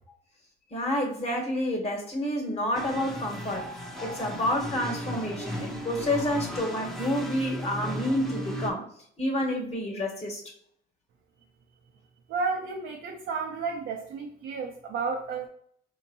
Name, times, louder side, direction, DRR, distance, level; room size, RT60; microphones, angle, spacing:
voice 1, 0.7-3.7 4.0-8.9 9.2-10.4, left 1 dB, 30° left, 0 dB, 1.3 m, -29 dB
sound 1, 2.7-8.7, equal, ahead, 0.7 m, -35 dB
voice 2, 12.3-15.5, right 4 dB, 80° right, 0 dB, 0.6 m, -32 dB
5.1 x 2.8 x 2.7 m, 0.63 s
cardioid pair, 90°, 20 cm